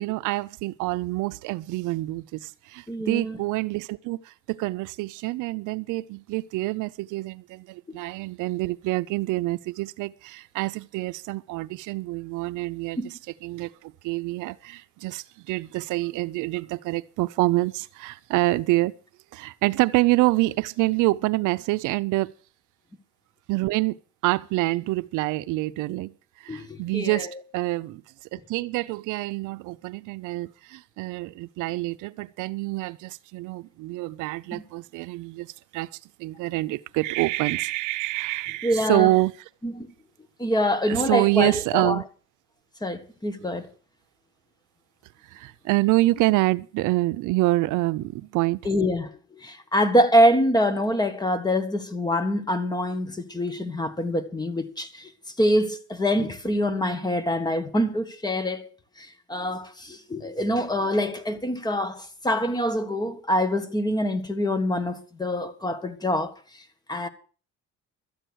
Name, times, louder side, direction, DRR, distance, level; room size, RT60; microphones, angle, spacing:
voice 1, 0.0-13.0 13.4-18.9 19.3-22.3 23.5-24.0 24.2-28.0 28.3-39.3 40.9-42.0 45.3-48.6, right 19 dB, 90° right, 0.6 m, -26 dB
voice 2, 2.9-3.4 13.0-13.1 26.5-27.3 38.6-39.1 39.6-39.9 40.4-42.0 42.8-43.7 48.6-55.1 55.4-58.7 59.0-66.4 66.9-67.1, equal, 15° left, 1.5 m, -25 dB
13.0 x 9.1 x 6.3 m
cardioid pair, 140°, 30 cm